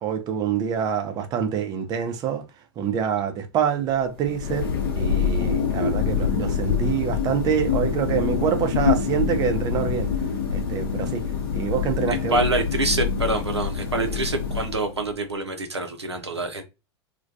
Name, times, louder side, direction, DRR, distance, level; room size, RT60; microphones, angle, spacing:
voice 1, 0.0-2.4 2.8-4.7 4.9-10.1 10.5-11.2 11.5-12.4 14.1-14.2, right 8 dB, 30° right, 0.5 m, -26 dB
Thunder, 4.1-15.1, left 6 dB, 60° left, 0.6 m, -25 dB
voice 2, 12.3-16.6, right 2 dB, 85° right, 0.5 m, -26 dB
2.2 x 2.2 x 2.6 m
figure-of-eight pair, 90°, 14 cm